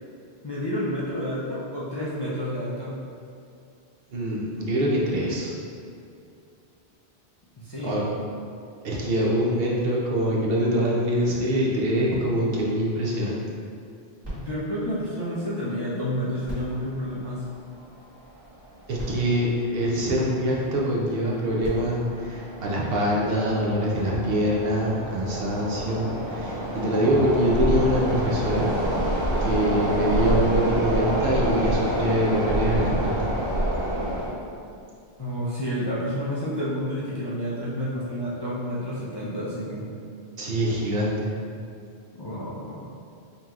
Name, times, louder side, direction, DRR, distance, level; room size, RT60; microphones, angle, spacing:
voice 1, 0.4-3.0 7.6-8.1 14.3-17.4 35.2-39.9 42.2-42.9, equal, 35° left, -8 dB, 0.4 m, -30 dB
voice 2, 4.1-5.5 7.8-8.0 8.8-13.4 18.9-28.7 29.4-33.3 40.4-41.3, equal, 65° right, -4 dB, 0.8 m, -24 dB
sound 1, 14.2-15.9 16.4-18.0 18.7-18.8 18.9-20.5 21.3-23.2 23.9-24.0, right 1 dB, 40° right, 1.5 m, -42 dB
sound 2, 17.4-17.5 17.7-17.8 18.6-18.8 19.1-19.2 19.8-20.2 20.6-34.3, right 1 dB, 20° right, 1.4 m, -27 dB
5.2 x 2.9 x 2.4 m, 2.5 s
omnidirectional pair, 1.1 m